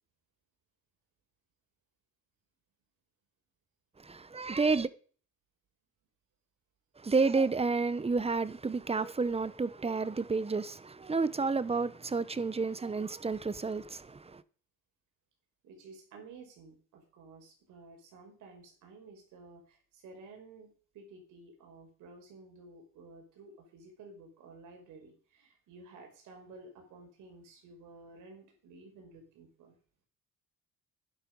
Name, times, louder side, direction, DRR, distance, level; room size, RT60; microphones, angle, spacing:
voice 1, 4.0-4.9 7.0-14.4, right 4 dB, 20° right, 0.9 m, -30 dB
voice 2, 15.6-29.8, right 3 dB, 90° right, 5.5 m, -53 dB
11.5 x 11.0 x 5.3 m
cardioid pair, 90°, 30 cm